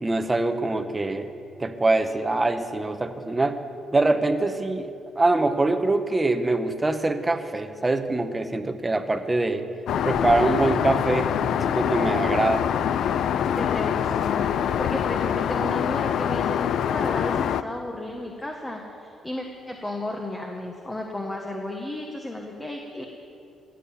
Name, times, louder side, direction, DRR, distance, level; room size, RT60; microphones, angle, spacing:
voice 1, 0.0-1.3 1.6-3.6 3.9-4.9 5.2-9.6 10.0-11.3 11.7-12.7, right 2 dB, 20° right, 8 dB, 1.0 m, -24 dB
Aircraft, 9.9-17.6, left 9 dB, 70° left, 0.4 m, -24 dB
voice 2, 13.6-23.0, left 1 dB, 15° left, 1 dB, 1.4 m, -33 dB
17.0 x 7.7 x 8.3 m, 2.7 s
cardioid pair, 90°, 0 cm